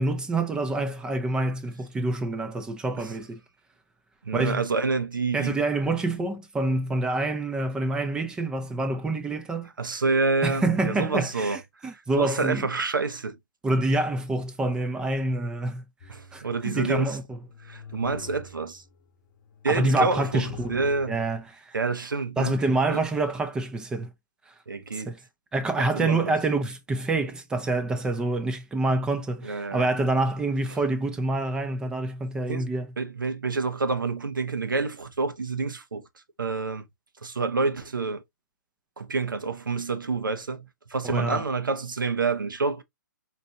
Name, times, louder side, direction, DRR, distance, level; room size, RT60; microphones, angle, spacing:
voice 1, 0.0-3.4 4.3-4.6 5.3-9.7 10.4-12.7 13.6-15.8 16.3-17.4 19.7-20.8 21.1-21.8 22.4-24.1 24.5-24.6 24.9-25.2 25.5-32.9 41.0-41.4, right 2 dB, 5° right, 0.4 m, -27 dB
voice 2, 4.2-5.6 9.8-11.6 11.9-13.4 16.1-17.2 17.6-18.8 19.6-21.2 21.7-22.6 22.9-23.0 24.7-25.1 25.8-26.3 29.4-29.9 32.5-32.7 33.0-36.0 36.4-36.9 37.2-38.2 39.0-42.8, right 4 dB, 85° right, 0.8 m, -28 dB
sound 1, 16.0-16.9 17.4-19.0 19.5-21.4, left 5 dB, 30° left, 0.9 m, -43 dB
4.3 x 2.5 x 2.7 m
hypercardioid pair, 135°, 11 cm